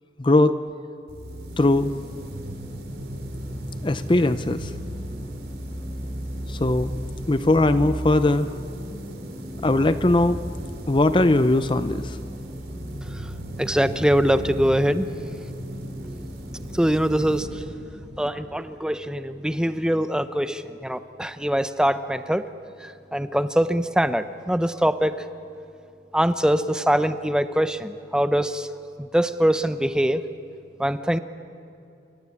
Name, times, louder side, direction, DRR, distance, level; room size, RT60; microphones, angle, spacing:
voice 1, 0.2-0.6 1.6-1.9 3.8-4.7 6.5-6.9 7.3-8.5 9.6-10.4 10.9-12.2, left 2 dB, 30° left, 12 dB, 0.6 m, -20 dB
sound 1, 1.1-18.6, equal, 65° right, 4.6 m, -35 dB
voice 2, 13.6-15.1 16.7-17.6 18.2-22.5 22.8-25.2 26.1-28.7 29.0-30.2 30.8-31.2, equal, 5° right, 11 dB, 0.8 m, -23 dB
28.5 x 24.5 x 8.5 m, 2.7 s
head